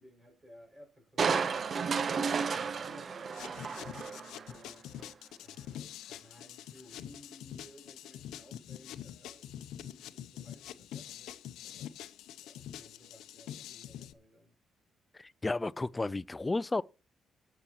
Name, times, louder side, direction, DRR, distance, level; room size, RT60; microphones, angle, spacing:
voice 1, 0.0-1.5 1.9-4.9 5.4-11.9 12.4-14.5, left 1 dB, 20° right, 5.9 m, -57 dB
Crushing, 1.2-4.6 5.0-5.1, right 5 dB, 45° right, 0.8 m, -32 dB
sound 1, 3.3-14.1, left 11 dB, 85° left, 0.6 m, -46 dB
voice 2, 15.2-16.8, left 2 dB, 20° left, 0.4 m, -32 dB
18.5 x 7.0 x 3.0 m
cardioid pair, 90°, 0 cm